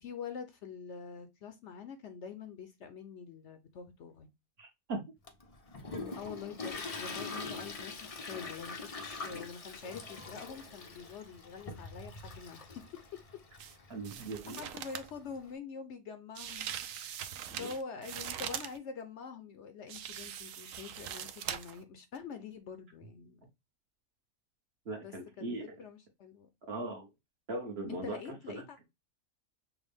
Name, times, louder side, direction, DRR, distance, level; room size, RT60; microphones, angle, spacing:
voice 1, 0.0-4.3 6.1-12.8 13.1-13.2 14.1-16.7 16.9-17.1 17.5-23.4 25.0-26.5 27.9-28.8, left 6 dB, 65° left, 0.9 m, -45 dB
voice 2, 4.6-5.0 13.9-14.6 17.6-17.7 24.8-25.6 26.7-27.1 27.5-28.6, right 2 dB, 50° right, 1.3 m, -39 dB
Toilet flush, 5.3-15.5, left 3 dB, 40° left, 0.5 m, -44 dB
sound 1, 13.6-13.7 14.0-15.1 16.3-18.8 19.9-21.8 22.1-22.2, right 9 dB, 75° right, 0.9 m, -41 dB
6.2 x 2.2 x 3.4 m
omnidirectional pair, 1.4 m